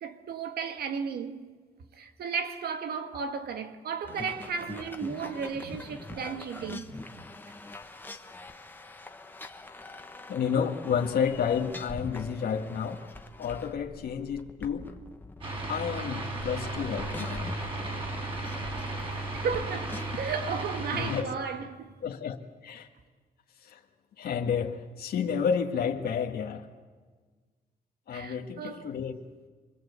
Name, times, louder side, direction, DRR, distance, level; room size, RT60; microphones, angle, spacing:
voice 1, 0.0-1.6 2.0-7.3 18.7-18.8 19.3-21.9 28.1-28.9, right 6 dB, 90° right, 1.9 m, -34 dB
sound 1, 4.1-20.3, left 2 dB, 15° left, 1.2 m, -44 dB
voice 2, 10.3-13.0 13.4-14.9 15.7-17.5 20.9-21.3 22.0-22.4 22.6-22.9 23.6-23.8 24.2-26.7 28.1-29.2, left 7 dB, 80° left, 1.8 m, -30 dB
sound 2, 15.4-21.2, right 2 dB, 35° right, 5.0 m, -35 dB
28.5 x 23.0 x 8.2 m
wide cardioid pair, 160°, 16 cm